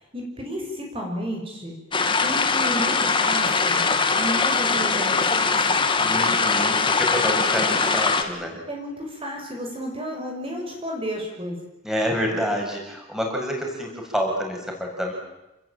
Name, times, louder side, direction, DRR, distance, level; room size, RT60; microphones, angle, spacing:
voice 1, 0.1-1.7 2.2-3.8 4.2-5.8 8.7-11.6, equal, 30° right, 1 dB, 6.5 m, -32 dB
sound 1, 1.9-8.2, left 4 dB, 25° left, 2.4 m, -21 dB
voice 2, 6.0-8.6 11.8-15.1, equal, 5° right, 0 dB, 7.7 m, -28 dB
29.0 x 21.5 x 9.2 m, 0.93 s
head